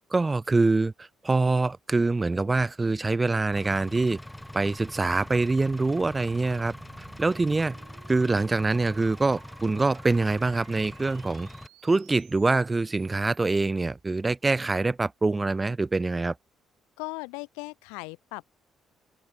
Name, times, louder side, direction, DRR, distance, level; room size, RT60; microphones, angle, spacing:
voice 1, 0.1-4.2 4.5-7.8 8.1-11.5 11.8-16.3, right 3 dB, 20° right, 0.5 m, -25 dB
Engine, 3.5-11.7, left 1 dB, 5° left, 3.7 m, -43 dB
sound 1, 3.8-13.7, right 22 dB, 65° right, 5.3 m, -57 dB
voice 2, 17.0-18.6, left 31 dB, 65° left, 2.7 m, -38 dB
open air
figure-of-eight pair, 45°, 0 cm